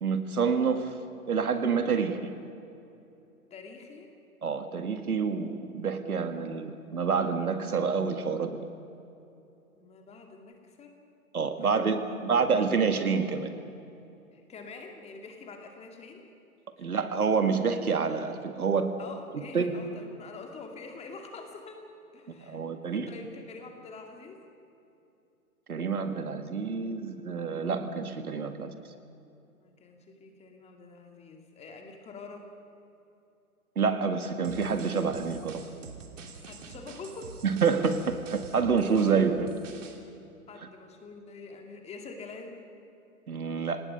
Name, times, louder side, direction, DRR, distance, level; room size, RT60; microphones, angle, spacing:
voice 1, 0.0-0.9 1.3-2.3 4.4-8.6 11.3-13.5 16.8-18.9 19.5-19.7 22.3-23.1 25.7-28.7 33.8-35.6 37.4-39.5 43.3-43.8, right 5 dB, 80° right, 8 dB, 1.9 m, -27 dB
voice 2, 3.5-4.1 9.7-10.9 11.6-12.2 14.3-16.3 16.8-16.9 19.0-21.8 22.1-24.4 29.6-32.5 36.4-37.4 40.5-42.6, left 4 dB, 15° left, 3 dB, 2.2 m, -46 dB
sound 1, 34.4-40.0, right 5 dB, 55° right, 2.7 m, -46 dB
26.5 x 19.0 x 5.4 m, 2.8 s
hypercardioid pair, 125°, 44 cm